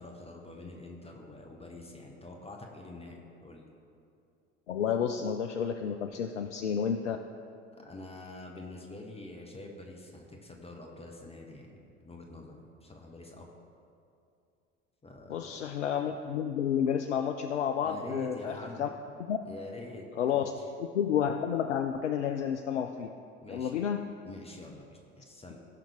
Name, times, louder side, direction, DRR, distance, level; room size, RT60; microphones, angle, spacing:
voice 1, 0.0-3.7 7.8-11.7 12.0-13.4 15.0-15.6 17.8-18.8 19.4-20.1 20.3-20.5 23.4-23.9 24.2-25.6, left 2 dB, 15° left, 0 dB, 1.3 m, -46 dB
voice 2, 4.7-7.2 15.3-18.9 19.3-19.4 20.2-20.4 20.8-23.1 23.5-24.0, left 8 dB, 75° left, 6 dB, 0.5 m, -30 dB
16.5 x 5.8 x 3.6 m, 2.5 s
figure-of-eight pair, 60°, 36 cm